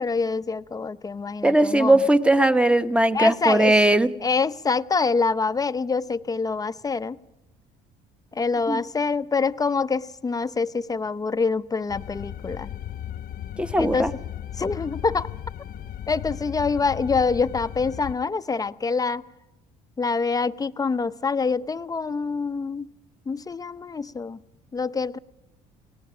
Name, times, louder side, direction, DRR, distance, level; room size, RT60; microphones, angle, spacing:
voice 1, 0.0-2.0 3.1-3.7 4.2-7.2 8.3-12.7 13.8-14.1 14.6-15.3 16.1-19.2 20.0-22.9 23.3-24.4 24.7-25.2, left 4 dB, 20° left, 14 dB, 0.6 m, -25 dB
voice 2, 1.4-4.1 8.7-8.8 13.6-14.1, right 1 dB, 5° right, 11 dB, 1.0 m, -19 dB
sound 1, 11.9-18.1, left 10 dB, 55° left, 0.9 m, -36 dB
28.5 x 18.0 x 5.0 m, 0.95 s
supercardioid pair, 70°, 18 cm